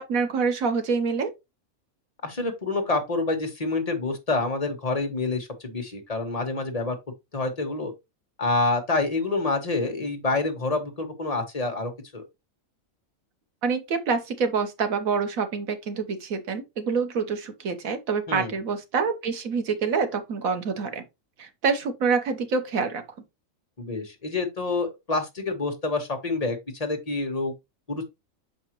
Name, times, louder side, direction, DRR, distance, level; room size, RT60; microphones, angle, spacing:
voice 1, 0.0-1.3 13.6-21.0 21.4-23.0, right 5 dB, 90° right, 1.5 m, -26 dB
voice 2, 2.2-7.0 7.3-7.9 8.4-12.2 18.3-18.6 23.8-27.5 27.9-28.0, left 3 dB, 30° left, 1.1 m, -27 dB
6.2 x 5.0 x 3.0 m
omnidirectional pair, 1.4 m